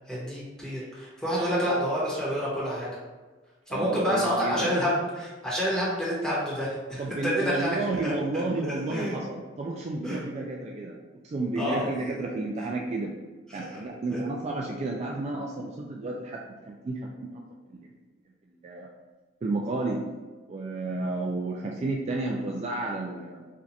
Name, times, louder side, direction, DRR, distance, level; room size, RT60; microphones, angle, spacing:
voice 1, 0.1-2.9 3.7-7.8 8.0-8.4 8.9-9.2 10.0-10.2 11.5-11.9 13.5-13.8 14.1-14.2, equal, 5° left, -8 dB, 1.1 m, -28 dB
voice 2, 3.7-4.8 7.0-11.0 11.2-13.1 13.5-17.4 17.7-17.9 18.6-18.9 19.4-20.0 20.5-23.5, right 2 dB, 35° right, -1 dB, 0.3 m, -31 dB
4.4 x 2.4 x 2.6 m, 1.3 s
head